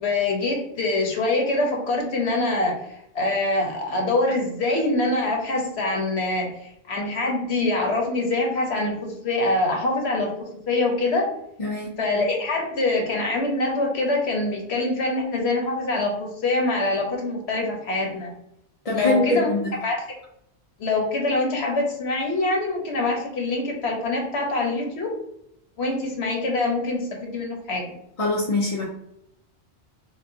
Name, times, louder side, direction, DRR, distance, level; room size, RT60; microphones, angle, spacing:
voice 1, 0.0-11.3 12.0-18.3 18.9-19.5 19.8-20.0 20.8-25.1 25.8-27.8, left 2 dB, 70° left, 0 dB, 1.2 m, -24 dB
voice 2, 11.6-11.9 18.8-19.7 28.2-28.8, left 2 dB, 40° left, -3 dB, 0.6 m, -23 dB
6.1 x 2.4 x 2.7 m, 0.77 s
omnidirectional pair, 1.1 m